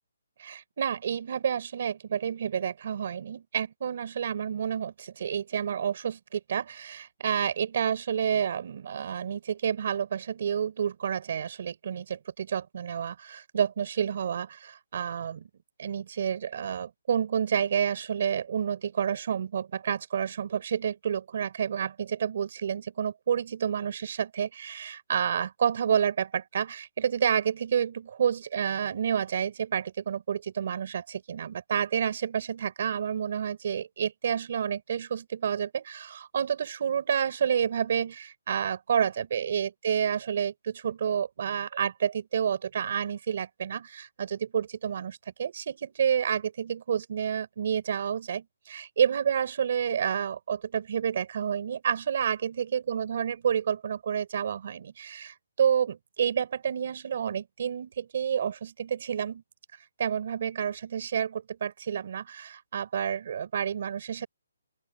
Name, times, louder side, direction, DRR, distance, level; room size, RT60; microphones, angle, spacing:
voice 1, 0.4-15.5 15.8-59.4 60.0-64.3, right 8 dB, 35° right, 5.9 m, -29 dB
open air
hypercardioid pair, 180°, 0 cm